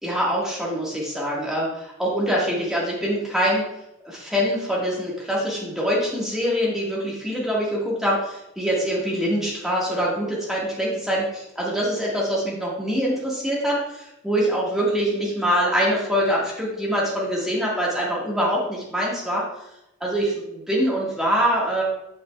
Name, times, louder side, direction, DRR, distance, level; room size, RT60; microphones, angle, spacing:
voice 1, 0.0-3.6 4.0-19.4 20.0-21.8, equal, ahead, -6 dB, 1.9 m, -24 dB
9.7 x 5.6 x 2.5 m, 0.88 s
head